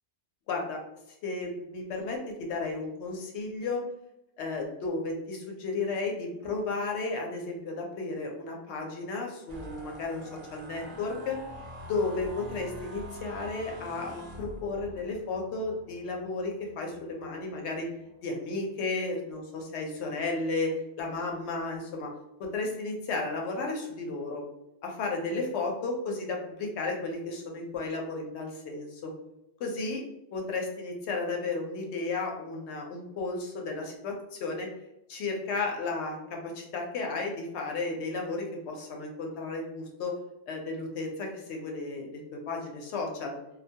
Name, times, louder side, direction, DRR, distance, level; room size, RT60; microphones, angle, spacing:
voice 1, 0.5-0.8 1.2-3.8 4.4-11.4 11.8-17.9 18.2-22.1 22.4-24.4 24.8-29.1 29.6-30.0 30.3-34.7 35.1-40.1 40.5-43.4, left 3 dB, 80° left, 1 dB, 0.8 m, -33 dB
sound 1, 9.5-18.8 19.4-19.7 20.0-20.4, equal, 50° right, 0.5 m, -46 dB
2.2 x 2.2 x 2.6 m, 0.86 s
omnidirectional pair, 1.1 m